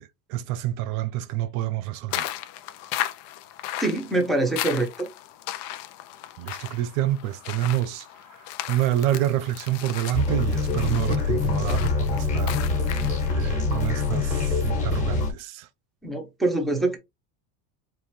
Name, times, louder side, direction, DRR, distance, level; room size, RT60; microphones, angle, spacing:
voice 1, 0.0-2.3 6.4-8.0 8.7-12.6 12.9-13.0 13.3-15.7, right 13 dB, 80° right, 0.8 m, -27 dB
sound 1, 2.1-13.3, left 13 dB, 55° left, 0.7 m, -36 dB
voice 2, 3.8-5.1 16.0-17.0, right 2 dB, ahead, 0.7 m, -24 dB
sound 2, 10.1-15.3, left 4 dB, 20° left, 1.4 m, -25 dB
4.7 x 3.2 x 3.2 m
cardioid pair, 170°, 40 cm